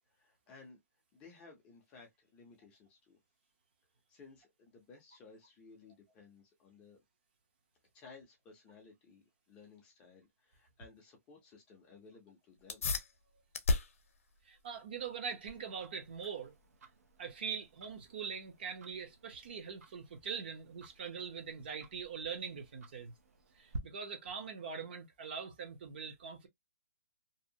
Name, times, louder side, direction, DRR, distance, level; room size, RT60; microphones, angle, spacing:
voice 1, 0.1-0.8 1.1-3.2 4.1-7.0 7.9-12.8, left 4 dB, 10° left, 0.5 m, -58 dB
sound 1, 12.6-22.6, left 3 dB, 60° left, 0.7 m, -41 dB
voice 2, 14.5-16.5 17.2-23.1 23.6-26.5, right 6 dB, 40° right, 0.6 m, -42 dB
Tick-tock, 15.5-23.8, right 2 dB, 85° right, 0.7 m, -53 dB
2.7 x 2.0 x 2.6 m
hypercardioid pair, 170°, 8 cm